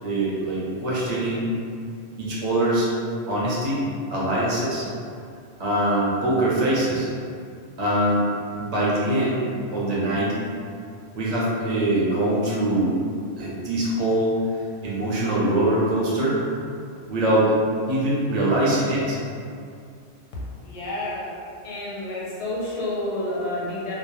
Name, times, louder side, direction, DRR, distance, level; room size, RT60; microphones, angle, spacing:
voice 1, 0.0-1.5 2.2-2.9 3.3-3.8 4.1-4.9 5.6-7.1 7.8-8.3 8.6-9.4 9.7-10.4 11.1-12.9 13.4-14.4 14.8-16.4 17.1-17.5 17.9-19.2, right 1 dB, 45° right, -7 dB, 0.5 m, -23 dB
voice 2, 20.6-21.3 21.6-23.9, left 1 dB, 85° left, -5 dB, 1.0 m, -29 dB
2.2 x 2.0 x 2.9 m, 2.3 s
omnidirectional pair, 1.2 m